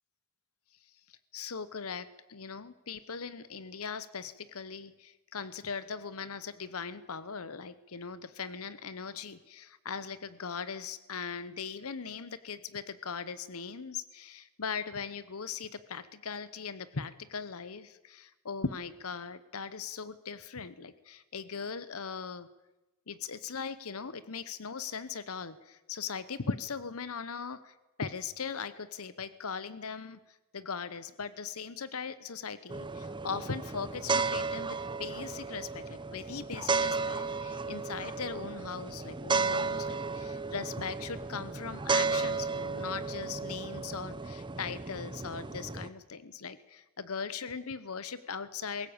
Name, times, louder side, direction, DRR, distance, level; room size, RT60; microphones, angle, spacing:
voice 1, 1.3-22.5 23.1-30.2 30.5-48.9, left 5 dB, 80° left, 16 dB, 1.0 m, -39 dB
sound 1, 32.7-45.9, right 4 dB, 20° right, 0.8 m, -34 dB
21.0 x 18.0 x 8.8 m, 1.0 s
head